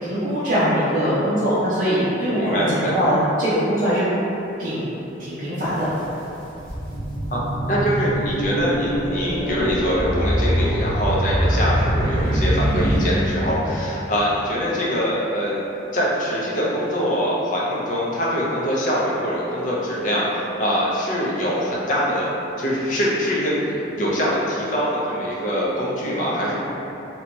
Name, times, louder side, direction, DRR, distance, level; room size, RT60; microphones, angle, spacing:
voice 1, 0.0-2.6 2.9-4.0 4.6-4.9 5.2-5.9, equal, 45° right, -12 dB, 0.5 m, -21 dB
voice 2, 2.3-3.0 7.3-15.6 15.9-26.6, equal, 40° left, -5 dB, 0.5 m, -23 dB
sound 1, 5.6-5.7 6.3-13.9, equal, 5° left, 1.0 m, -23 dB
2.6 x 2.3 x 2.9 m, 3.0 s
head